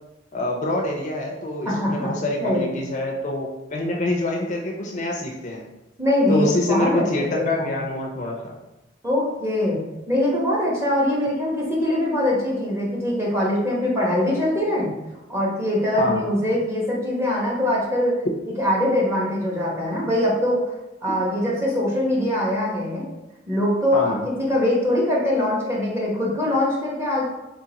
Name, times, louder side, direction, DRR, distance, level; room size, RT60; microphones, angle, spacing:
voice 1, 0.3-5.6 6.3-8.5 16.0-16.3 23.9-24.2, left 1 dB, 40° left, 0 dB, 0.5 m, -26 dB
voice 2, 1.6-2.6 6.0-7.7 9.0-9.8 10.1-14.9 15.3-18.2 18.6-20.6 21.0-23.1 23.5-27.2, left 1 dB, 15° right, -4 dB, 1.0 m, -22 dB
3.7 x 3.6 x 2.8 m, 0.99 s
head